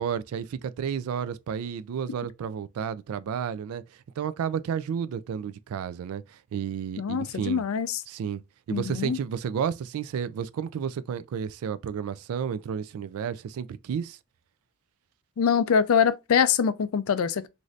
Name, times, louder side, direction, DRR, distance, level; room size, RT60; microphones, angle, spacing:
voice 1, 0.0-3.8 4.2-7.6 8.1-8.4 8.7-14.2, right 7 dB, 75° right, 0.3 m, -31 dB
voice 2, 7.0-8.0 8.7-9.2 15.4-17.5, left 7 dB, 70° left, 0.4 m, -24 dB
3.1 x 2.6 x 2.4 m
head